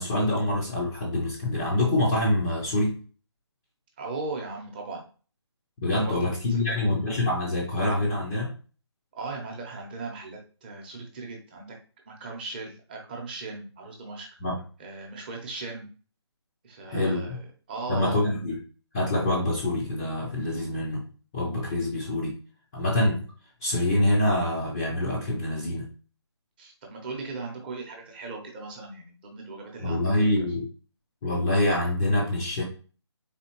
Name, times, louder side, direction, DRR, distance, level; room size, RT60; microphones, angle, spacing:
voice 1, 0.0-3.0 5.8-8.5 14.4-14.6 16.9-17.4 17.9-18.6 18.9-21.1 21.3-22.3 22.7-23.2 23.6-25.9 29.8-30.7 31.2-32.6, left 1 dB, 10° left, -6 dB, 0.4 m, -25 dB
voice 2, 4.0-5.1 6.0-6.7 9.1-11.8 12.1-14.3 14.8-15.9 16.6-18.2 26.6-30.3, right 3 dB, 20° right, 1 dB, 0.7 m, -38 dB
4.2 x 3.3 x 2.9 m, 0.37 s
figure-of-eight pair, 160°, 15 cm